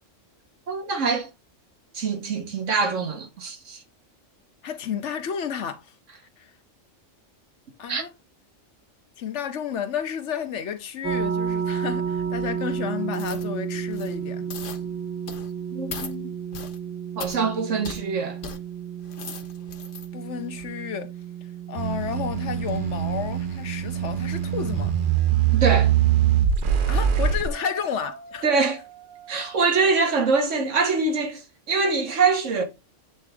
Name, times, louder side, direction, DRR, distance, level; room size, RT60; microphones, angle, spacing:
voice 1, 0.7-1.3 1.9-3.8 7.9-8.0 15.7-16.3 17.2-18.4 25.5-25.9 28.4-28.8 29.3-32.6, right 4 dB, 75° right, 1.8 m, -24 dB
voice 2, 4.6-5.9 6.4-6.5 7.8-8.1 9.2-14.5 20.1-21.1 21.7-24.9 26.9-28.5, left 8 dB, 70° left, 1.1 m, -31 dB
sound 1, 11.0-25.1, right 7 dB, 15° right, 0.8 m, -32 dB
sound 2, 13.1-13.5 13.9-14.2 14.5-14.8 15.3-15.5 15.9-16.1 16.5-16.8 17.2-17.4 17.8-18.0 18.4-18.6 19.0-20.1 20.5-20.6, left 6 dB, 50° left, 0.9 m, -38 dB
sound 3, 21.8-27.5, right 10 dB, 50° right, 0.8 m, -23 dB
8.6 x 3.6 x 3.5 m
omnidirectional pair, 1.3 m